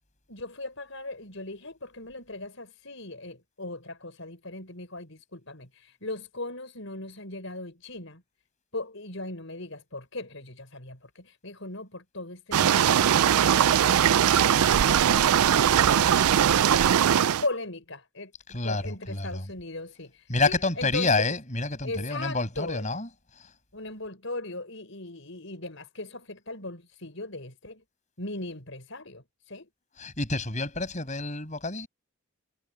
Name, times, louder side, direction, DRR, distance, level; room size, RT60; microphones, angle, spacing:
voice 1, 0.3-8.2 8.7-16.1 17.4-18.3 18.6-21.1 21.8-22.8 23.7-27.8 28.2-29.7, left 2 dB, 60° left, 6.2 m, -38 dB
sound 1, 12.5-17.5, right 9 dB, 80° right, 0.4 m, -20 dB
voice 2, 18.5-19.4 20.3-23.5 30.0-31.9, left 3 dB, 35° left, 6.1 m, -28 dB
head